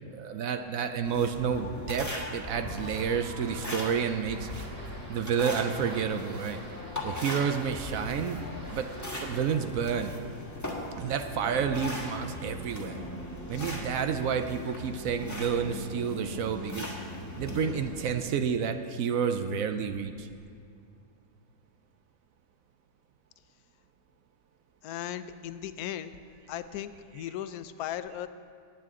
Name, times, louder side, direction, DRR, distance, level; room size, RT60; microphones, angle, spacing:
voice 1, 0.1-4.7 5.1-6.6 7.0-8.4 8.7-8.9 9.2-10.1 11.0-13.0 13.5-16.9 17.4-20.3, right 7 dB, 70° right, 8 dB, 1.0 m, -30 dB
sound 1, 1.0-18.2, left 1 dB, 10° left, 1.3 m, -39 dB
sound 2, 2.7-9.5, right 1 dB, 30° right, 2.3 m, -48 dB
voice 2, 24.8-26.2 26.5-28.3, left 11 dB, 80° left, 12 dB, 1.1 m, -37 dB
19.0 x 8.4 x 3.7 m, 2.4 s
omnidirectional pair, 1.6 m